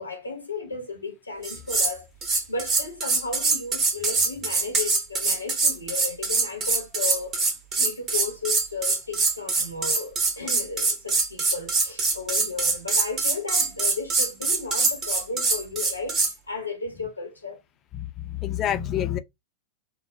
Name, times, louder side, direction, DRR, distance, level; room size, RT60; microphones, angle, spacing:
voice 1, 0.0-17.6, left 4 dB, 80° left, 0.6 m, -34 dB
sound 1, 1.4-1.9 2.2-16.3, right 3 dB, 30° right, 0.9 m, -24 dB
voice 2, 17.9-19.2, left 11 dB, 30° left, 0.4 m, -28 dB
2.8 x 2.0 x 2.5 m
figure-of-eight pair, 90°, 0 cm